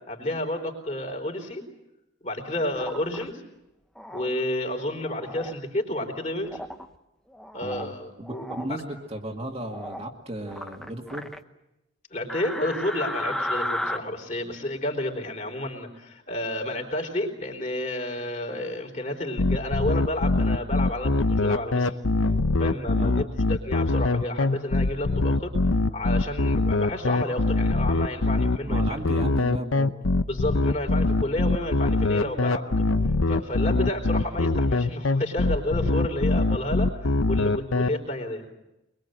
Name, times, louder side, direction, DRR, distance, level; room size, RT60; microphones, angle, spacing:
voice 1, 0.1-1.6 2.2-3.4 4.1-6.6 7.5-8.8 12.1-22.0 22.6-29.0 30.3-32.7 33.3-38.5, left 1 dB, 35° left, 2 dB, 4.1 m, -31 dB
sound 1, 2.7-3.2 4.0-4.3 5.0-5.6 6.4-6.9 7.3-7.9 8.2-8.7 9.7-10.1 10.5-11.4 12.3-14.0, left 1 dB, 5° left, 0.8 m, -34 dB
voice 2, 7.6-7.9 8.2-11.3 23.0-23.3 28.7-30.0 33.7-33.9, right 1 dB, 30° right, 1 dB, 2.1 m, -35 dB
sound 2, 19.4-37.9, left 2 dB, 80° left, 0.8 m, -23 dB
24.0 x 22.5 x 7.8 m, 0.93 s
head